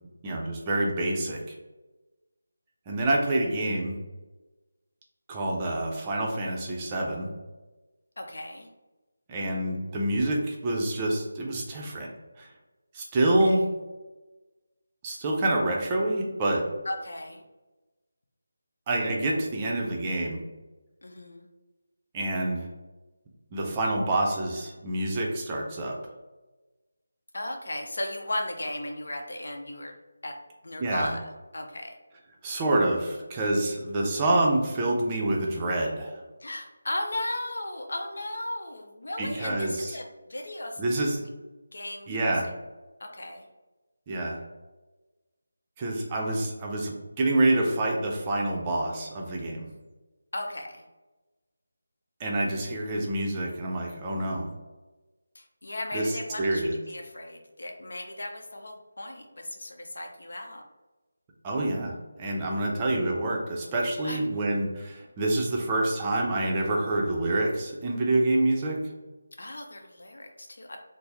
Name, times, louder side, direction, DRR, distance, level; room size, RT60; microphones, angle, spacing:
voice 1, 0.2-1.4 2.9-4.0 5.3-7.3 9.3-12.1 12.4-12.5 12.9-13.7 15.0-16.6 18.9-20.4 22.1-22.6 23.5-26.0 30.8-31.1 32.4-36.2 39.2-40.0 40.8-41.2 42.1-42.5 44.1-44.4 45.8-49.7 52.2-54.5 55.9-56.1 56.4-56.7 61.4-68.8, right 1 dB, 20° right, -1 dB, 0.5 m, -27 dB
voice 2, 8.2-8.7 13.3-13.6 16.8-17.4 21.0-21.5 27.3-29.9 30.2-30.4 30.6-32.0 36.4-40.8 41.7-42.3 43.0-43.5 50.3-50.8 55.3-60.6 64.0-64.3 69.4-70.8, left 1 dB, 70° left, 3 dB, 0.7 m, -36 dB
4.3 x 2.0 x 3.4 m, 1.2 s
figure-of-eight pair, 170°, 0 cm